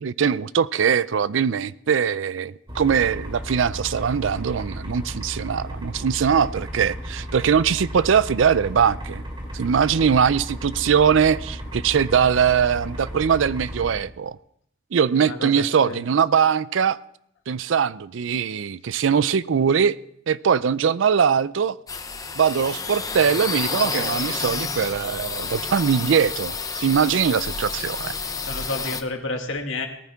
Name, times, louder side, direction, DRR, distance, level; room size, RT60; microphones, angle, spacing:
voice 1, 0.0-9.2 9.5-14.4 14.9-17.0 17.5-20.0 20.3-21.8 22.4-28.1, right 7 dB, 70° right, 18 dB, 0.4 m, -21 dB
sound 1, 2.7-13.9, equal, 25° right, 2.9 m, -34 dB
voice 2, 15.1-16.0 28.4-29.9, left 2 dB, 80° left, 3 dB, 2.1 m, -31 dB
sound 2, 21.9-29.0, left 4 dB, 20° left, 0.8 m, -30 dB
18.5 x 14.5 x 3.6 m, 0.72 s
head